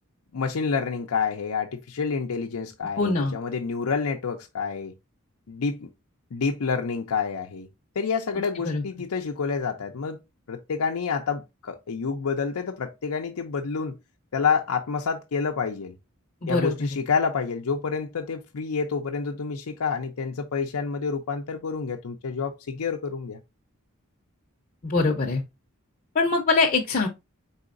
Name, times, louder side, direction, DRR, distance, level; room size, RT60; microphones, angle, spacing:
voice 1, 0.3-4.9 5.5-5.9 6.3-7.7 8.0-10.2 10.5-14.0 14.3-16.0 16.5-23.4, left 5 dB, 90° left, 0.5 m, -28 dB
voice 2, 3.0-3.3 8.6-8.8 16.4-16.7 24.8-25.4 26.1-27.1, left 3 dB, 40° left, 0.6 m, -23 dB
4.2 x 3.9 x 2.5 m
head